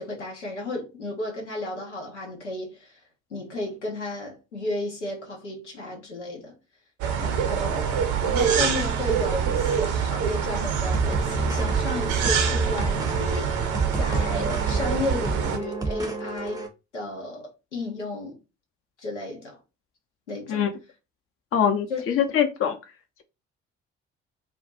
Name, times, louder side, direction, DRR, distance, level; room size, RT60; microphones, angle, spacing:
voice 1, 0.0-3.0 3.3-6.5 7.2-7.9 8.2-16.6 16.9-18.4 19.0-19.6 20.3-20.6 21.9-22.0, left 2 dB, 90° left, 0.7 m, -33 dB
sound 1, 7.0-15.6, right 7 dB, 60° right, 0.7 m, -25 dB
sound 2, 10.8-16.7, right 2 dB, 10° right, 0.7 m, -30 dB
voice 2, 21.5-22.8, left 8 dB, 40° left, 0.7 m, -23 dB
2.6 x 2.3 x 3.8 m
figure-of-eight pair, 50°, 34 cm